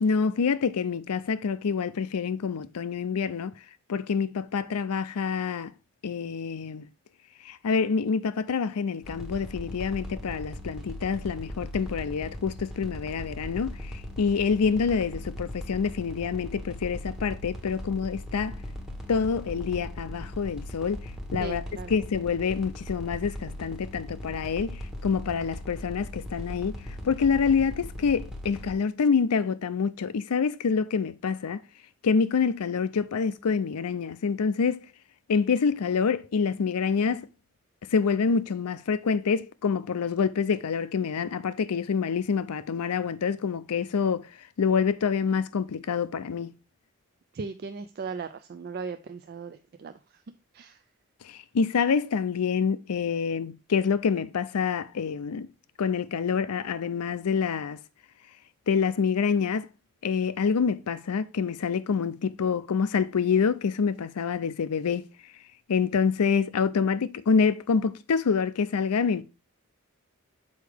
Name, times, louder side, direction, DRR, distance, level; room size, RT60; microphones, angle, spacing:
voice 1, 0.0-3.5 3.9-5.7 6.0-6.9 7.4-18.6 19.1-26.7 27.0-31.6 32.0-34.8 35.3-37.3 37.9-44.3 44.6-46.5 51.2-55.5 55.8-57.8 58.7-59.7 60.0-65.1 65.7-69.2, left 6 dB, 90° left, 0.5 m, -27 dB
sound 1, 9.0-28.7, left 1 dB, ahead, 1.0 m, -39 dB
voice 2, 21.4-22.0 47.3-50.2 50.5-50.8, right 4 dB, 45° right, 0.3 m, -38 dB
6.4 x 4.7 x 3.4 m
head